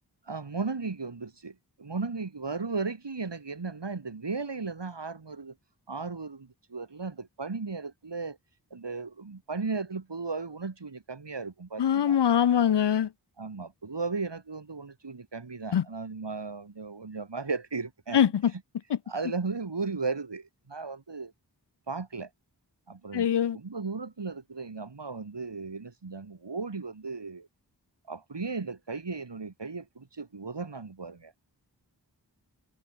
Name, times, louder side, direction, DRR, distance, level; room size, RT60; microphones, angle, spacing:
voice 1, 0.3-5.5 5.9-8.4 8.7-12.2 13.4-18.3 19.1-21.3 21.9-22.3 22.9-27.5 28.1-31.3, right 4 dB, 80° right, 3.2 m, -36 dB
voice 2, 11.8-13.1 15.7-15.8 18.1-18.5 23.1-23.6, left 9 dB, 75° left, 0.6 m, -23 dB
wide cardioid pair, 55°, 42 cm